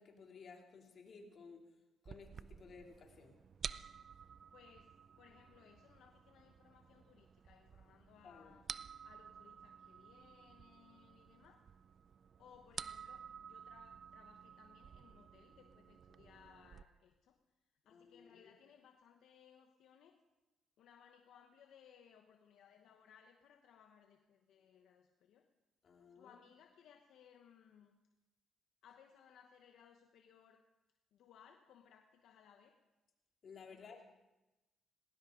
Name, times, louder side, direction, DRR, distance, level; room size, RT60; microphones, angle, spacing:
voice 1, 0.0-1.7 2.0-3.4 8.2-8.6 17.9-18.5 25.8-26.3 33.4-34.0, left 5 dB, 55° left, 1 dB, 3.0 m, -56 dB
sound 1, 2.1-16.8, right 7 dB, 50° right, 0.5 m, -52 dB
voice 2, 4.2-8.7 9.0-11.7 12.4-20.2 20.8-25.5 26.1-28.0 28.8-30.7 31.1-32.8 33.7-34.0, left 8 dB, 80° left, 5 dB, 1.1 m, -64 dB
18.5 x 18.5 x 3.9 m, 1.0 s
cardioid pair, 90°, 0 cm